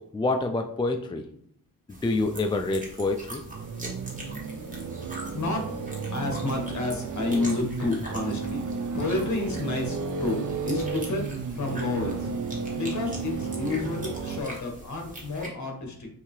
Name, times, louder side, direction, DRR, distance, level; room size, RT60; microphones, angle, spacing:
voice 1, 0.1-1.2 1.9-3.4, left 2 dB, 15° left, 5 dB, 0.3 m, -27 dB
sound 1, 1.9-15.5, right 1 dB, 20° right, 1.5 m, -43 dB
sound 2, 3.5-14.4, right 5 dB, 60° right, 0.5 m, -33 dB
voice 2, 5.3-5.7 6.1-12.3 12.8-16.1, left 2 dB, 50° left, 2 dB, 1.4 m, -30 dB
5.7 x 2.7 x 3.2 m, 0.65 s
cardioid pair, 85°, 36 cm